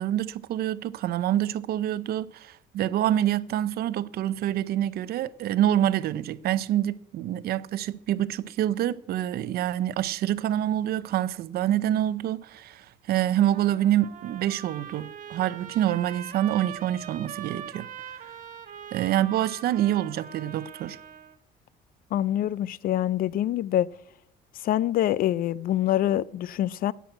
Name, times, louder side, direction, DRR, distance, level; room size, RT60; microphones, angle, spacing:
voice 1, 0.0-17.9 18.9-21.0, right 12 dB, 65° right, 0.6 m, -26 dB
Trumpet, 13.5-21.4, right 8 dB, 50° right, 1.4 m, -42 dB
voice 2, 22.1-23.9 24.6-26.9, left 12 dB, 60° left, 0.4 m, -25 dB
10.5 x 8.3 x 8.6 m
cardioid pair, 110°, 17 cm